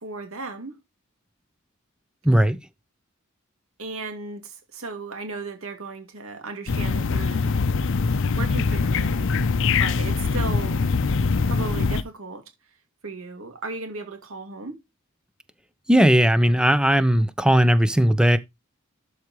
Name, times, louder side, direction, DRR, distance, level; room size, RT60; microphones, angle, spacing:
voice 1, 0.0-0.8 3.8-7.4 8.2-10.8 11.4-12.4 13.0-14.8, right 3 dB, 70° right, 2.4 m, -36 dB
voice 2, 2.2-2.6 15.9-18.4, equal, 5° right, 0.7 m, -18 dB
sound 1, 6.7-12.0, left 4 dB, 65° left, 0.6 m, -23 dB
12.5 x 4.8 x 3.1 m
head